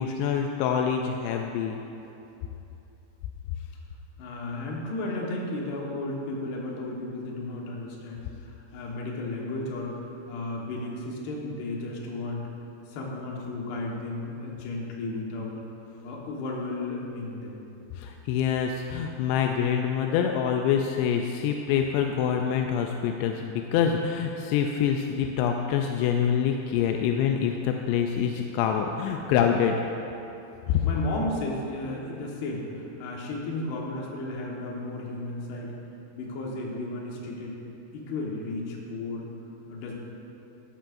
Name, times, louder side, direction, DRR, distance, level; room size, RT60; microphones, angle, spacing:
voice 1, 0.0-1.8 17.9-29.8 30.7-30.8, left 8 dB, 85° left, 3 dB, 2.5 m, -26 dB
voice 2, 4.2-10.0 10.3-12.4 12.9-15.5 16.0-17.5 30.8-35.7 36.1-37.6 37.9-39.3 39.7-40.0, left 2 dB, 65° left, -2 dB, 3.1 m, -34 dB
13.0 x 13.0 x 2.6 m, 2.9 s
omnidirectional pair, 5.4 m